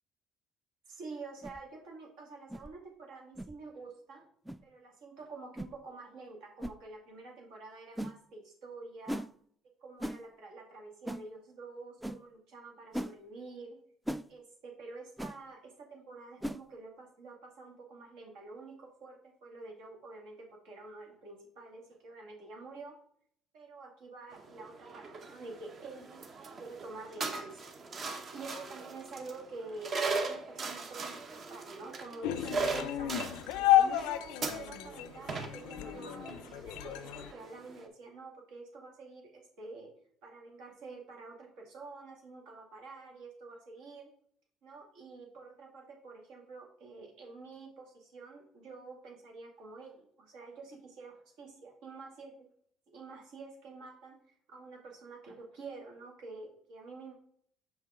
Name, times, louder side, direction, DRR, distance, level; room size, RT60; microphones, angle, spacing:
voice 1, 0.9-4.3 4.6-9.2 9.8-13.8 14.3-23.0 23.5-26.3 26.6-27.7 28.3-33.2 33.6-39.9 40.2-44.1 44.6-52.3 52.9-57.2, right 3 dB, 75° right, 0 dB, 2.1 m, -48 dB
sound 1, 1.4-1.6 2.5-2.7 3.4-3.5 4.5-4.6 5.6-5.7 6.6-6.8 8.0-8.2 9.1-9.3 10.0-10.2 11.1-11.2 12.0-12.2 12.9-13.1 14.1-14.3 15.2-15.4 16.4-16.6, equal, 5° right, 0.3 m, -37 dB
sound 2, 24.3-37.8, right 3 dB, 45° right, 0.9 m, -40 dB
sound 3, 32.2-37.3, left 13 dB, 80° left, 0.3 m, -31 dB
5.7 x 5.2 x 3.6 m, 0.62 s
supercardioid pair, 80°, 0 cm